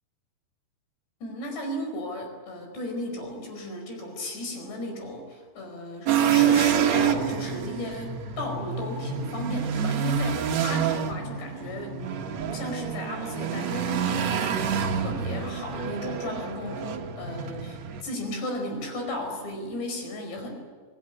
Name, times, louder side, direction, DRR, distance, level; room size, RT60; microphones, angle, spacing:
voice 1, 1.2-12.0 12.4-20.5, left 1 dB, 80° left, 4 dB, 7.2 m, -35 dB
sound 1, 6.1-18.0, right 8 dB, 60° right, 2.0 m, -27 dB
25.5 x 18.0 x 9.9 m, 1.5 s
omnidirectional pair, 4.9 m